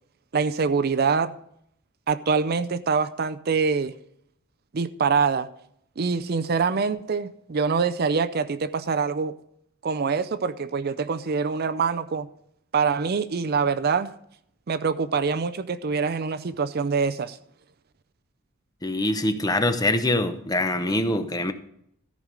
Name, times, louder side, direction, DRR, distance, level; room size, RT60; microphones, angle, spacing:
voice 1, 0.3-1.3 2.1-3.9 4.7-5.5 6.0-9.4 9.8-12.3 12.7-14.1 14.7-17.4, right 5 dB, 45° right, 0.5 m, -24 dB
voice 2, 18.8-21.5, left 1 dB, 20° left, 0.7 m, -24 dB
14.0 x 5.2 x 6.3 m
head